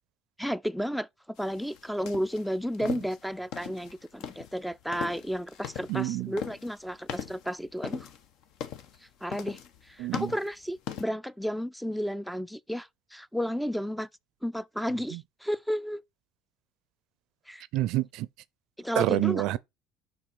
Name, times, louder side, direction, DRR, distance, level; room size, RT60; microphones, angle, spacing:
voice 1, 0.4-8.1 9.2-14.1 14.4-16.0 17.5-17.7 18.8-19.6, equal, ahead, 0.4 m, -32 dB
sound 1, 1.4-11.0, left 8 dB, 65° left, 1.0 m, -40 dB
voice 2, 5.9-6.3 10.0-10.3 15.1-15.2 17.7-18.3 19.0-19.6, right 16 dB, 70° right, 0.4 m, -27 dB
5.5 x 4.1 x 5.3 m
supercardioid pair, 90°, 0 cm